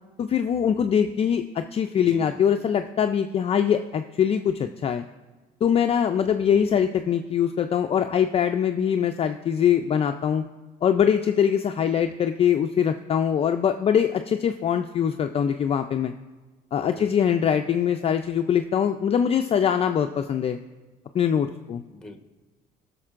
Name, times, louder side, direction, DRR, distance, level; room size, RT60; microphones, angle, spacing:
voice 1, 0.2-5.0 5.6-10.5 10.8-16.1 16.7-20.6 21.1-21.8, left 8 dB, 35° left, 6 dB, 0.4 m, -23 dB
voice 2, 1.9-2.4 6.4-6.6 16.8-17.3 21.9-22.2, left 1 dB, 5° left, 5 dB, 1.0 m, -42 dB
18.0 x 6.5 x 2.5 m, 1.3 s
cardioid pair, 110°, 17 cm